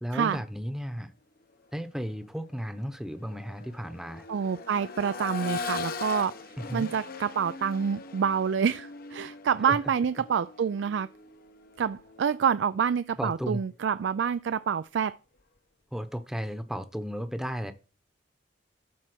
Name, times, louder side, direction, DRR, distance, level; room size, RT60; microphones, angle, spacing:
voice 1, 0.0-1.1 1.7-4.3 6.6-6.9 9.7-9.8 13.2-13.6 15.9-17.7, equal, 5° right, 0.9 m, -34 dB
Accelerating revving vroom, 1.9-2.0 2.5-12.4 14.1-14.2, left 4 dB, 55° left, 0.9 m, -40 dB
voice 2, 4.3-6.3 6.7-11.1 11.8-15.2, right 7 dB, 75° right, 0.4 m, -27 dB
13.0 x 4.3 x 6.1 m
head